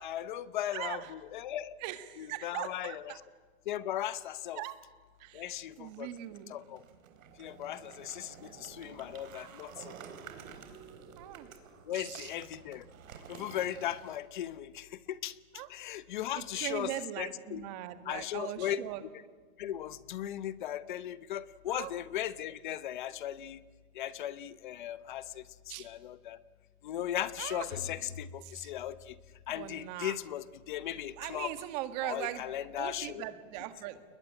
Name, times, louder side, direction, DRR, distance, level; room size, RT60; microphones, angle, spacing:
voice 1, 0.0-1.8 2.2-3.1 3.7-4.6 5.3-6.1 6.5-6.8 7.4-10.0 11.9-12.8 13.3-15.4 15.7-17.6 18.0-19.1 19.6-23.6 23.9-26.4 26.8-29.2 29.5-31.5 32.0-33.2, left 11 dB, 35° left, 17 dB, 0.7 m, -37 dB
voice 2, 0.7-1.1 1.8-3.2 4.5-4.7 5.2-5.5 5.8-6.5 11.2-11.5 11.9-12.3 15.5-15.7 16.3-19.0 21.7-21.9 25.7-25.9 27.4-27.6 28.4-28.7 29.6-30.1 31.2-32.5 32.8-34.0, right 14 dB, 30° right, 10 dB, 1.7 m, -40 dB
sound 1, 5.5-14.2, right 7 dB, 65° right, 4.1 m, -51 dB
sound 2, 27.7-29.7, left 6 dB, 65° left, 3.7 m, -47 dB
29.0 x 21.0 x 9.8 m, 1.5 s
supercardioid pair, 175°, 43 cm